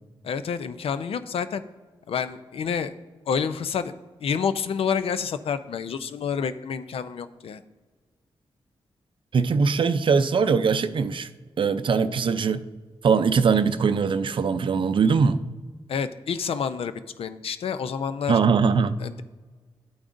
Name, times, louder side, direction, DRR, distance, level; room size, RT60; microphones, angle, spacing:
voice 1, 0.2-1.6 2.1-2.9 3.3-3.9 4.2-7.6 15.9-18.4 19.0-19.2, left 6 dB, 75° left, 0.5 m, -28 dB
voice 2, 9.3-11.3 11.6-12.6 13.0-15.4 18.3-19.0, right 5 dB, 55° right, 0.5 m, -21 dB
11.0 x 8.7 x 2.6 m
cardioid pair, 85°, 10 cm